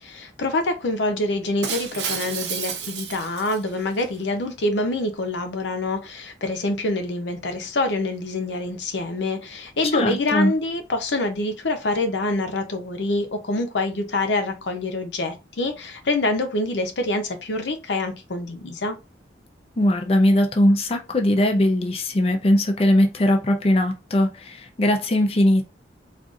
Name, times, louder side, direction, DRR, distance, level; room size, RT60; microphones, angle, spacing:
voice 1, 0.0-19.0, left 2 dB, 90° left, 0.7 m, -26 dB
Shatter, 1.6-4.0, right 7 dB, 80° right, 0.7 m, -31 dB
voice 2, 9.9-10.5 19.8-25.6, left 1 dB, 35° left, 0.4 m, -20 dB
3.8 x 2.5 x 2.4 m
head